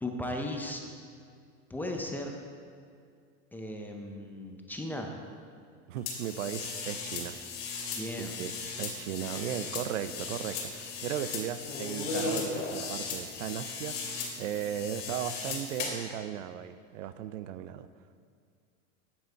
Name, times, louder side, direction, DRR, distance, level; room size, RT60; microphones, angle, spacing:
voice 1, 0.0-0.8 1.7-2.4 3.5-5.1 7.9-8.4 9.2-9.5, left 1 dB, 5° left, 1 dB, 0.5 m, -36 dB
voice 2, 5.9-7.4 8.4-8.5 8.8-17.9, right 10 dB, 85° right, 13 dB, 0.6 m, -36 dB
sound 1, 6.1-16.1, left 4 dB, 75° left, 2.6 m, -37 dB
9.5 x 7.2 x 4.5 m, 2.2 s
supercardioid pair, 145°, 37 cm